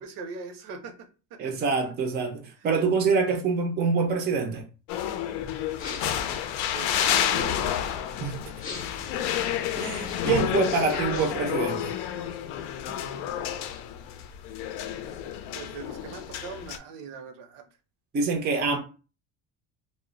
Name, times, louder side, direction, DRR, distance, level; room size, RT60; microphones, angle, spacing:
voice 1, 0.0-1.5 6.7-8.0 10.5-11.8 12.1-12.3 15.5-17.7 18.5-18.8, right 4 dB, 70° right, 0.7 m, -40 dB
voice 2, 1.4-4.6 8.2-8.4 9.8-11.9 18.1-18.8, right 4 dB, 25° right, 0.4 m, -25 dB
sound 1, 4.9-16.8, left 10 dB, 80° left, 0.5 m, -30 dB
sound 2, 5.7-6.2 6.9-7.5 8.5-9.1 9.9-10.4 10.9-11.5, left 4 dB, 30° left, 0.6 m, -41 dB
2.1 x 2.0 x 3.7 m
cardioid pair, 140°, 42 cm